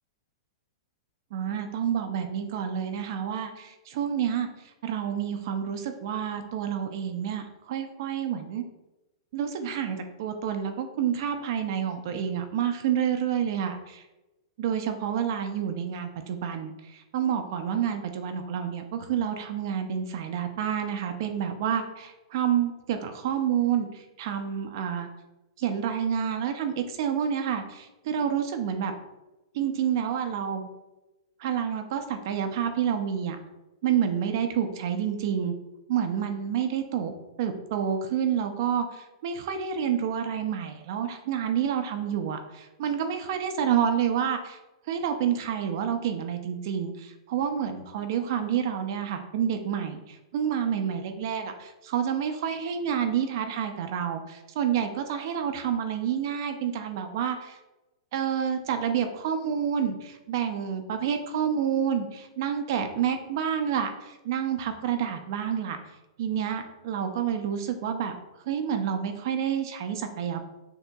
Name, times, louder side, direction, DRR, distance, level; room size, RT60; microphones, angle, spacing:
voice 1, 1.3-4.5 4.8-8.6 9.3-14.0 14.6-25.1 25.6-28.9 29.5-30.7 31.4-33.4 33.8-35.5 35.9-37.1 37.4-44.6 44.9-57.6 58.1-65.8 66.2-68.1 68.5-70.4, right 8 dB, 45° right, 7 dB, 0.4 m, -29 dB
6.4 x 2.7 x 2.3 m, 1.0 s
supercardioid pair, 170°, 3 cm